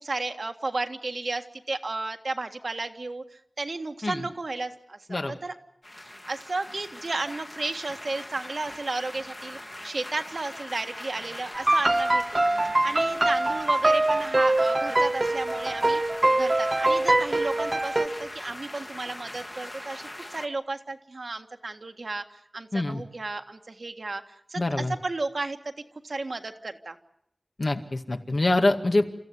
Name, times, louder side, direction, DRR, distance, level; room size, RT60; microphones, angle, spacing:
voice 1, 0.0-3.2 3.6-5.5 6.0-16.0 16.3-24.6 25.0-25.6 26.0-27.0, right 3 dB, 80° right, 6 dB, 1.7 m, -33 dB
sound 1, 5.8-20.5, left 1 dB, 35° left, 1.7 m, -41 dB
sound 2, 11.5-18.1, right 2 dB, 45° right, 1.4 m, -23 dB
voice 2, 24.6-24.9 27.6-29.1, left 2 dB, 65° left, 6 dB, 2.0 m, -25 dB
30.0 x 14.5 x 9.7 m, 0.72 s
wide cardioid pair, 55°, 0 cm